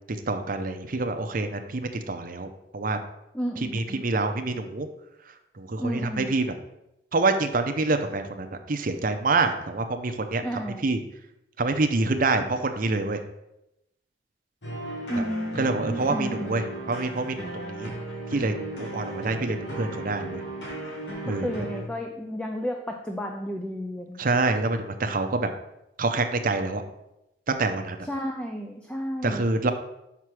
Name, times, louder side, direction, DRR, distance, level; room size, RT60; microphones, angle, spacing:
voice 1, 0.1-3.0 3.7-4.9 5.3-6.5 7.1-11.0 11.6-13.2 15.2-15.3 15.6-17.9 18.3-20.4 21.2-21.5 24.2-25.5 26.0-26.8 27.5-28.1 29.2-29.7, right 3 dB, 50° right, 7 dB, 0.7 m, -26 dB
voice 2, 3.3-4.0 5.8-6.3 10.4-10.9 15.1-16.6 21.2-24.3 28.1-29.7, equal, 5° left, 3 dB, 0.5 m, -32 dB
sound 1, 14.6-21.8, right 1 dB, 85° left, 2.4 m, -35 dB
5.9 x 4.8 x 5.9 m, 0.88 s
head